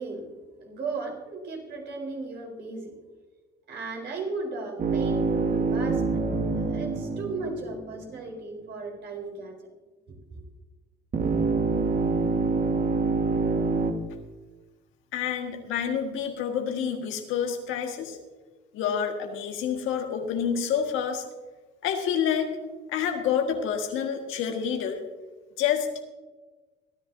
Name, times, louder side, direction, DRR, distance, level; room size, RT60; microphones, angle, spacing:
voice 1, 0.0-3.0 3.7-9.6 10.3-10.4, right 3 dB, 55° right, 0 dB, 4.0 m, -36 dB
sound 1, 4.8-8.2 11.1-13.9, right 4 dB, 40° right, 1.5 m, -26 dB
voice 2, 15.1-18.2 18.7-21.2 21.8-22.6 22.9-25.0 25.6-25.9, left 8 dB, 70° left, 4 dB, 1.7 m, -28 dB
24.5 x 10.5 x 2.7 m, 1.3 s
supercardioid pair, 70°, 21 cm